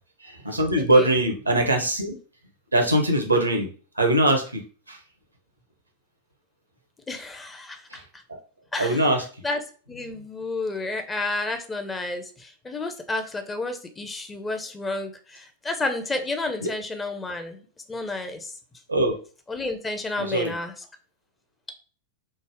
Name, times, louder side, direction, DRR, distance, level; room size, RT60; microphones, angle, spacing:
voice 1, 0.2-2.2 2.7-3.7 4.0-5.0 7.9-8.0 8.3-8.4 8.8-9.2 16.6-16.7 18.9-19.1 20.2-20.5, right 1 dB, 85° right, 3 dB, 0.6 m, -22 dB
voice 2, 0.8-1.1 7.1-8.2 8.7-9.1 9.4-9.6 9.9-17.6 17.9-18.5 19.5-20.7, left 2 dB, 15° left, 6 dB, 0.5 m, -31 dB
3.2 x 2.1 x 3.4 m, 0.38 s
figure-of-eight pair, 90°, 0 cm